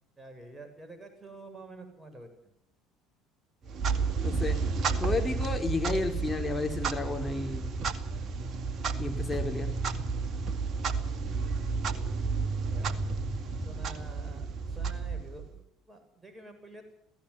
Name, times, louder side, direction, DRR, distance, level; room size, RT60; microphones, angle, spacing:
voice 1, 0.2-2.3 12.5-13.0 13.6-17.0, right 2 dB, 15° right, 5 dB, 7.7 m, -48 dB
Clock, 3.6-15.6, right 4 dB, 40° right, 2.1 m, -31 dB
voice 2, 4.2-4.6 5.0-7.7 9.0-9.7, left 3 dB, 15° left, 3 dB, 4.3 m, -32 dB
28.0 x 17.5 x 5.8 m, 0.74 s
figure-of-eight pair, 60°, 0 cm